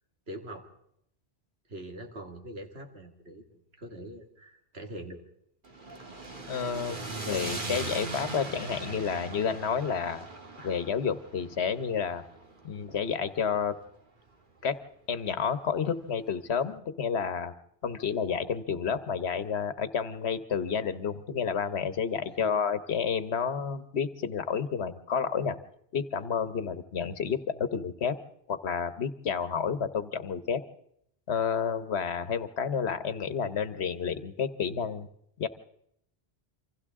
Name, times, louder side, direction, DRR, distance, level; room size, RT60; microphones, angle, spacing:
voice 1, 0.3-0.7 1.7-5.2 22.4-22.5, right 1 dB, 75° right, 4 dB, 2.4 m, -43 dB
sound 1, 5.6-13.9, right 3 dB, 50° right, 1.9 m, -40 dB
voice 2, 6.5-7.0 7.2-10.3 10.6-12.2 12.6-13.8 14.6-14.8 15.1-17.5 17.8-25.6 25.9-28.2 28.5-30.6 31.3-35.1 35.4-35.5, left 6 dB, 85° left, 12 dB, 1.3 m, -30 dB
28.0 x 25.5 x 3.7 m, 0.74 s
omnidirectional pair, 1.1 m